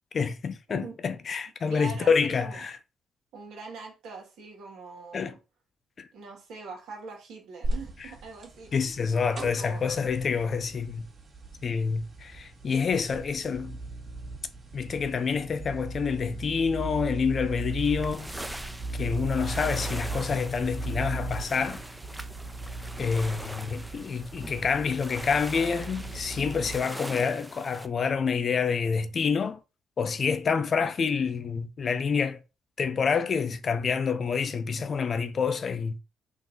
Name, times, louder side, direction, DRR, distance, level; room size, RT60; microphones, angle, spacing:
voice 1, 0.1-2.8 5.1-5.3 6.0-6.1 8.7-11.1 11.6-13.8 14.7-18.3 19.0-21.8 23.0-29.6 30.0-32.4 32.8-36.0, left 5 dB, 45° left, 0.5 m, -27 dB
voice 2, 1.7-2.6 3.3-5.4 6.1-9.0 9.6-9.8, right 4 dB, 80° right, 1.8 m, -43 dB
sound 1, 7.6-26.8, right 2 dB, 45° right, 1.7 m, -37 dB
sound 2, 17.5-27.9, right 1 dB, 5° right, 0.4 m, -42 dB
3.9 x 2.8 x 3.9 m
cardioid pair, 90°, 0 cm